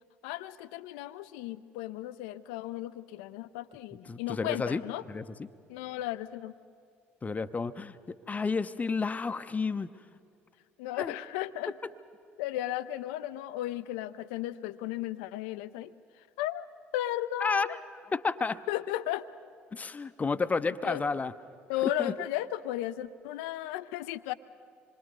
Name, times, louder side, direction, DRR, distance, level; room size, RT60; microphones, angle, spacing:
voice 1, 0.2-5.0 5.7-6.5 10.8-11.7 12.4-15.9 16.4-16.7 16.9-17.8 18.7-19.2 20.8-21.0 21.7-24.3, left 13 dB, 65° left, 14 dB, 0.6 m, -35 dB
voice 2, 4.1-5.5 7.2-9.9 11.0-11.1 17.4-18.6 19.7-21.3 21.8-22.1, left 4 dB, 25° left, 12 dB, 0.7 m, -31 dB
26.5 x 22.5 x 5.2 m, 2.4 s
figure-of-eight pair, 50°, 6 cm